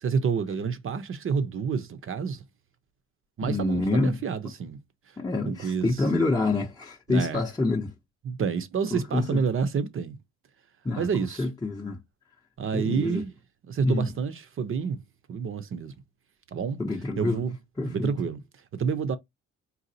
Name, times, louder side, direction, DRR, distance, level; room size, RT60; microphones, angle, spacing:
voice 1, 0.0-2.4 3.4-4.8 5.4-5.9 7.1-7.4 8.2-10.2 10.9-11.5 12.6-13.3 13.7-15.0 15.3-15.9 16.5-16.8 17.2-17.6 17.9-18.4 18.7-19.2, right 6 dB, 45° right, 0.7 m, -28 dB
voice 2, 3.4-4.2 5.2-7.9 8.9-9.4 10.8-11.1 11.4-12.0 12.7-13.2 13.8-14.1 16.8-17.4 17.8-18.1, left 2 dB, 10° left, 0.7 m, -27 dB
4.0 x 2.3 x 2.8 m
cardioid pair, 90°, 30 cm